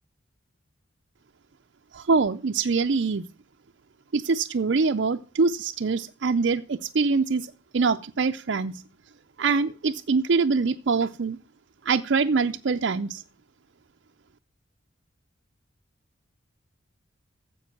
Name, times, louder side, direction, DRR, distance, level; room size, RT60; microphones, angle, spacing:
voice 1, 1.9-3.3 4.1-8.8 9.4-11.4 11.8-13.2, right 4 dB, 60° right, 6 dB, 0.5 m, -24 dB
15.0 x 5.3 x 7.1 m, 0.37 s
head